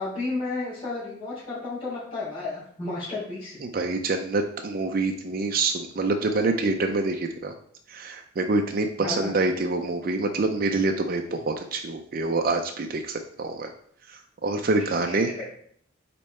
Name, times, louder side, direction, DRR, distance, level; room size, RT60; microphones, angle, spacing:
voice 1, 0.0-3.6 9.0-9.3 14.8-15.3, left 3 dB, 20° left, -14 dB, 2.7 m, -32 dB
voice 2, 3.6-7.5 7.9-13.7 14.1-15.3, right 3 dB, 45° right, 4 dB, 0.4 m, -26 dB
5.3 x 4.5 x 4.2 m, 0.63 s
head